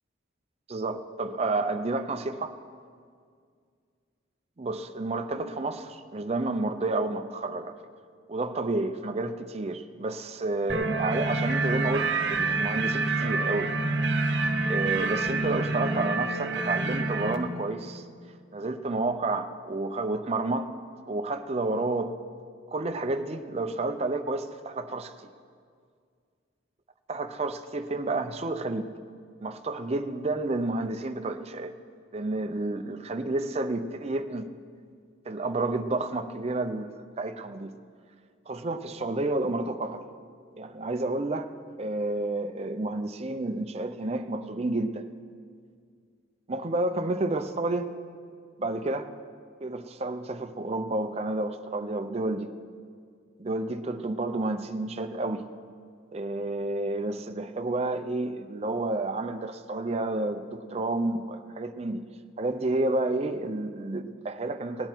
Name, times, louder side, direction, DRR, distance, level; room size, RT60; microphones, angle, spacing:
voice 1, 0.7-2.6 4.6-7.8 8.3-13.7 14.7-18.0 18.5-20.8 21.1-22.2 22.7-25.3 27.1-28.9 29.4-31.7 32.1-34.5 35.3-37.7 38.5-40.0 40.6-41.5 41.8-45.1 46.5-47.9 48.6-49.1 49.6-52.5 53.4-55.4 56.1-62.0 62.4-64.9, right 2 dB, 35° right, 7 dB, 0.5 m, -30 dB
sound 1, 10.7-17.4, right 3 dB, 60° right, 0.9 m, -27 dB
18.5 x 10.0 x 4.5 m, 2.1 s
head